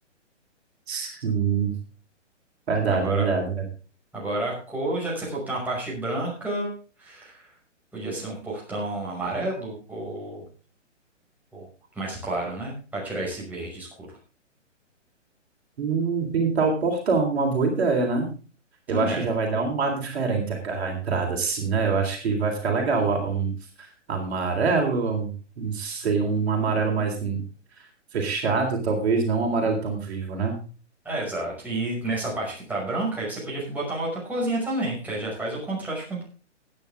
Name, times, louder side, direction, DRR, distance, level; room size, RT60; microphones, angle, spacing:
voice 1, 0.9-1.7 2.7-3.5 15.8-18.3 18.9-23.5 23.8-25.3 25.6-27.4 27.8-27.9 28.1-30.5, right 4 dB, 55° right, 2 dB, 3.8 m, -25 dB
voice 2, 2.9-3.3 4.1-6.7 7.0-7.5 7.9-10.4 11.5-11.7 11.9-14.2 18.9-19.3 31.0-36.2, right 2 dB, 5° right, -5 dB, 5.6 m, -30 dB
16.0 x 9.6 x 3.5 m, 0.35 s
figure-of-eight pair, 130°, 37 cm